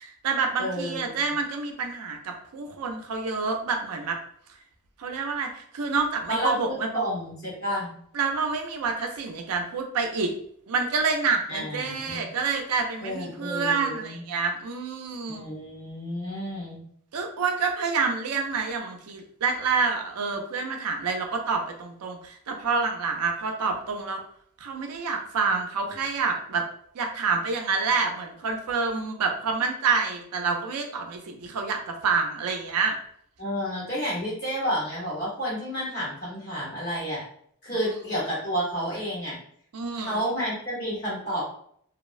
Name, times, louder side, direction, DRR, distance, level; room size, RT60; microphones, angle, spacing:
voice 1, 0.0-4.2 5.0-7.0 8.1-10.3 10.7-15.5 17.1-24.2 24.6-26.6 26.9-33.0 37.7-37.8 39.7-40.3, right 4 dB, 90° right, 4 dB, 0.5 m, -28 dB
voice 2, 0.6-1.3 6.3-7.9 11.5-12.3 13.0-14.2 15.3-16.8 33.4-37.2 37.6-39.4 40.0-41.5, equal, 45° left, -7 dB, 1.1 m, -30 dB
2.8 x 2.0 x 2.4 m, 0.64 s
head